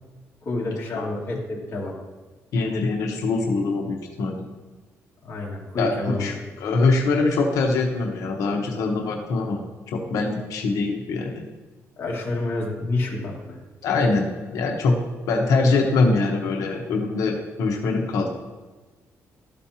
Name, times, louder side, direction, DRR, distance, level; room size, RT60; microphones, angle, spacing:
voice 1, 0.4-1.9 5.2-6.3 12.0-13.6, left 2 dB, 40° left, -4 dB, 2.1 m, -28 dB
voice 2, 2.5-4.4 5.8-9.6 9.9-11.5 13.8-15.0 15.3-18.3, left 3 dB, 80° left, 1 dB, 1.0 m, -23 dB
12.5 x 5.2 x 2.8 m, 1.3 s
cardioid pair, 150°, 6 cm